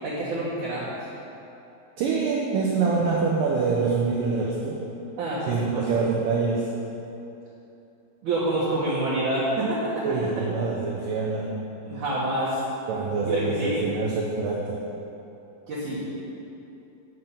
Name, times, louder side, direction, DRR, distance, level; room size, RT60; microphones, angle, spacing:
voice 1, 0.0-0.9 5.2-5.9 8.2-10.0 11.8-12.6 13.3-13.8 15.7-16.1, right 1 dB, 60° right, -10 dB, 2.4 m, -27 dB
voice 2, 2.0-4.8 5.5-6.7 10.0-11.6 12.9-14.8, right 4 dB, 85° right, -2 dB, 1.9 m, -25 dB
9.5 x 7.6 x 5.6 m, 2.9 s
omnidirectional pair, 5.0 m